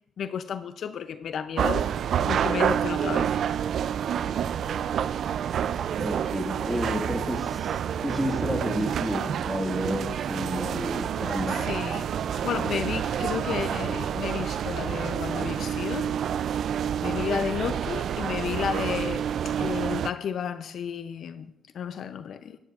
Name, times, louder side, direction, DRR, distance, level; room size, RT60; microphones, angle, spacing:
voice 1, 0.2-1.9 2.2-3.4 11.5-16.2 17.0-22.6, left 7 dB, 65° left, 0.5 m, -32 dB
sound 1, 1.6-20.1, right 9 dB, 65° right, 0.3 m, -28 dB
voice 2, 6.0-11.7, equal, 5° left, 1.7 m, -31 dB
18.5 x 9.4 x 2.4 m
cardioid pair, 90°, 0 cm